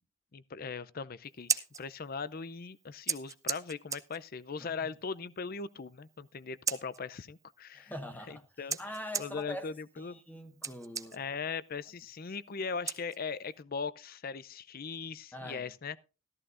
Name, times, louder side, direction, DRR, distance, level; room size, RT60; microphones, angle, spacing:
voice 1, 0.3-7.9 8.3-8.8 9.2-10.2 11.1-16.0, left 5 dB, 45° left, 0.5 m, -39 dB
Scissors, 1.2-13.6, right 6 dB, 15° right, 0.6 m, -41 dB
voice 2, 7.7-8.4 8.8-9.7 10.0-11.2 15.3-15.7, equal, 10° left, 1.2 m, -43 dB
14.0 x 14.0 x 2.5 m
head